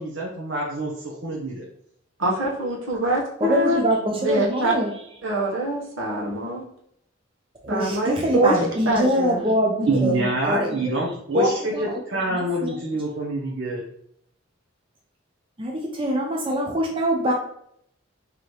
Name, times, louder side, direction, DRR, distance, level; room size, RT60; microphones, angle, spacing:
voice 1, 0.0-1.6 9.9-13.8, right 2 dB, 60° right, -3 dB, 0.7 m, -26 dB
voice 2, 2.2-3.8 4.1-4.7 5.2-6.7 7.7-9.4 9.8-10.3, right 1 dB, 75° right, -3 dB, 1.2 m, -24 dB
voice 3, 3.4-4.9 7.6-10.9 11.3-12.0 12.3-12.8 15.6-17.3, equal, 25° right, 0 dB, 0.5 m, -24 dB
3.9 x 2.9 x 3.2 m, 0.71 s
head